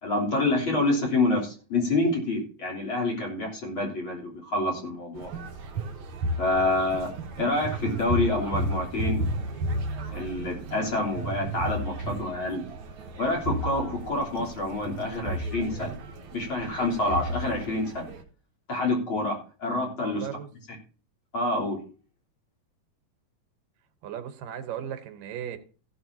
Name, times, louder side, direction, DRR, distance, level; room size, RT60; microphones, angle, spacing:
voice 1, 0.0-5.3 6.4-7.1 7.4-9.2 10.1-12.6 13.2-15.9 16.3-18.1 18.7-20.3 21.3-21.8, left 2 dB, 40° left, -2 dB, 4.1 m, -27 dB
sound 1, 5.1-18.2, right 1 dB, 60° right, 3.0 m, -33 dB
voice 2, 20.0-20.5 24.0-25.6, right 9 dB, 80° right, 8 dB, 2.8 m, -36 dB
15.5 x 11.5 x 2.8 m, 0.37 s
omnidirectional pair, 3.8 m